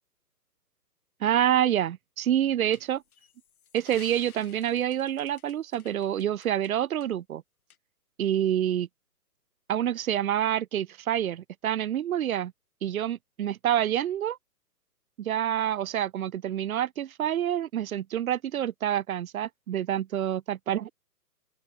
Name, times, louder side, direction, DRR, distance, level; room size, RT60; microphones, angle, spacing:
voice 1, 1.2-3.0 3.7-7.4 8.2-8.9 9.7-12.5 12.8-14.4 15.2-20.9, right 11 dB, 60° right, 0.6 m, -27 dB
sound 1, 2.7-6.7 7.0-7.1 7.7-7.8, left 8 dB, 60° left, 2.3 m, -53 dB
open air
hypercardioid pair, 145°, 49 cm